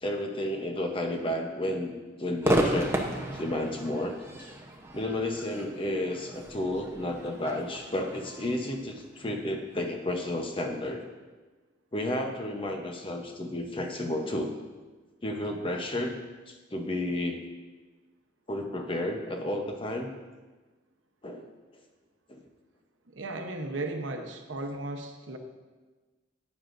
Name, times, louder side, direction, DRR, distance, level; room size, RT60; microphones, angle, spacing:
voice 1, 0.0-3.0 3.3-4.5 4.9-11.0 11.9-14.5 15.2-16.2 16.5-17.4 18.5-20.1 21.2-21.5 22.3-22.4, left 1 dB, 25° left, 3 dB, 0.8 m, -32 dB
Crowd / Fireworks, 2.4-9.8, right 1 dB, 15° right, 0.8 m, -33 dB
voice 2, 23.1-25.4, right 2 dB, 80° right, 4 dB, 0.9 m, -35 dB
11.5 x 9.2 x 2.6 m, 1.3 s
head